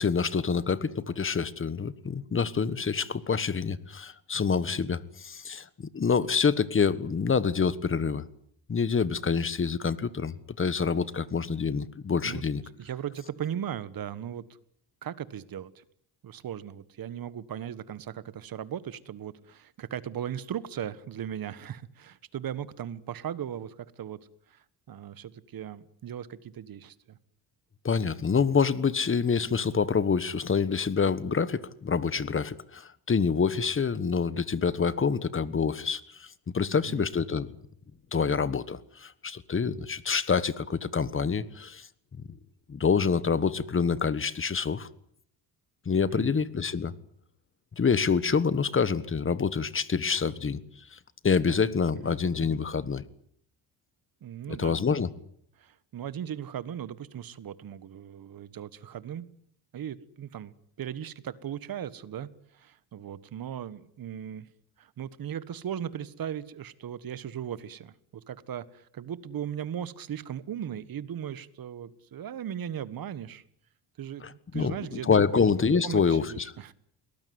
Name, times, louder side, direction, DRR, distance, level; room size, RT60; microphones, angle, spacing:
voice 1, 0.0-8.2 8.7-12.6 27.8-37.5 38.1-41.9 42.3-42.4 42.7-44.9 45.8-46.9 47.7-50.6 50.9-53.0 54.5-55.1 74.2-74.8 75.1-76.5, left 5 dB, 30° left, 16 dB, 1.4 m, -27 dB
voice 2, 12.8-14.5 15.0-15.8 16.2-24.2 24.5-27.2 36.8-37.1 46.1-46.4 51.5-51.6 52.0-52.2 54.2-54.8 55.6-59.3 59.7-64.5 64.8-73.4 74.0-75.5 75.8-76.7, right 9 dB, 50° right, 16 dB, 1.5 m, -38 dB
22.0 x 19.0 x 9.6 m, 0.67 s
cardioid pair, 110°, 43 cm